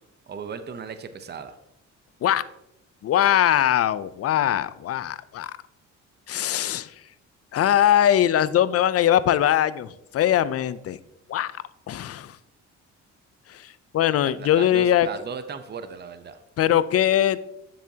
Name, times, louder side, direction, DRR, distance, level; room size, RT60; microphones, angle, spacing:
voice 1, 0.3-1.5 14.2-16.4, right 6 dB, 35° right, 10 dB, 0.7 m, -36 dB
voice 2, 3.0-5.5 6.3-6.9 7.5-11.0 11.3-11.5 11.9-12.4 13.5-13.7 13.9-15.1 16.6-17.4, left 11 dB, 50° left, 16 dB, 0.5 m, -21 dB
9.8 x 7.2 x 2.8 m, 0.83 s
cardioid pair, 90°, 30 cm